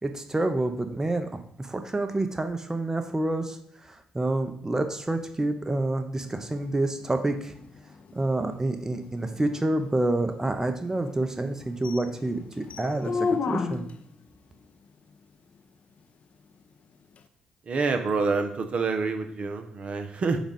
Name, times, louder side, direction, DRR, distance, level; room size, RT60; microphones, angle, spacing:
voice 1, 0.0-1.3 1.6-7.5 8.1-13.9, right 2 dB, 20° right, 6 dB, 0.8 m, -28 dB
sound 1, 6.2-14.1 17.2-17.3, left 5 dB, 55° left, 0.5 m, -35 dB
voice 2, 17.7-20.4, right 4 dB, 50° right, 6 dB, 0.8 m, -27 dB
7.1 x 2.5 x 5.4 m, 0.70 s
hypercardioid pair, 50°, 3 cm